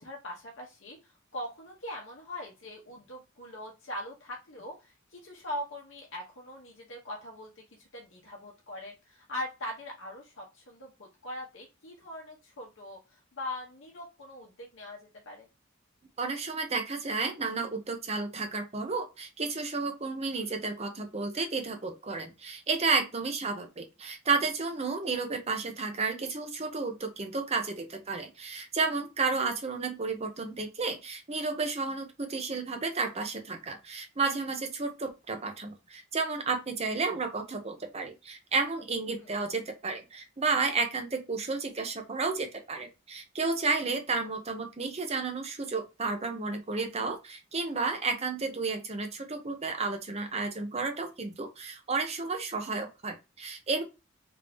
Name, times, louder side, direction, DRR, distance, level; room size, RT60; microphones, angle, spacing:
voice 1, 0.0-15.0 15.2-15.5 39.2-39.3, left 1 dB, 65° left, -1 dB, 0.9 m, -41 dB
voice 2, 16.2-53.8, right 4 dB, 30° right, 5 dB, 0.7 m, -32 dB
3.4 x 2.7 x 3.4 m, 0.27 s
head